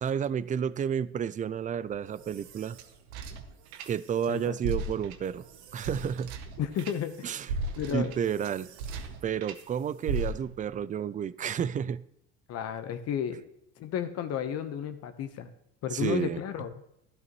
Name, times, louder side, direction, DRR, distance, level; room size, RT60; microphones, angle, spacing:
voice 1, 0.0-2.8 3.9-5.4 5.7-6.4 7.2-7.5 7.9-8.7 9.2-12.0 15.9-16.4, right 8 dB, 25° right, 18 dB, 0.4 m, -31 dB
sound 1, 1.9-4.3 4.6-9.6 10.1-10.7, right 3 dB, 90° right, 1.0 m, -37 dB
voice 2, 6.6-7.3 7.8-8.1 12.5-13.4 13.8-15.5 15.8-16.7, left 9 dB, 50° left, 9 dB, 1.0 m, -32 dB
12.0 x 11.0 x 3.1 m, 0.77 s
supercardioid pair, 95°, 32 cm